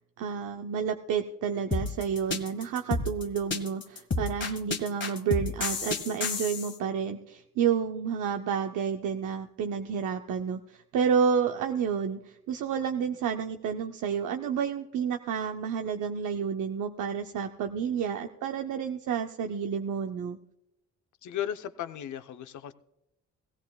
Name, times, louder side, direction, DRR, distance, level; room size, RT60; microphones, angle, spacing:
voice 1, 0.2-20.4, right 7 dB, 80° right, 5 dB, 0.6 m, -30 dB
sound 1, 1.7-6.7, left 4 dB, 40° left, 1.4 m, -31 dB
voice 2, 21.2-22.7, left 10 dB, 75° left, 10 dB, 0.7 m, -35 dB
16.5 x 16.5 x 2.3 m, 0.86 s
cardioid pair, 85°, 30 cm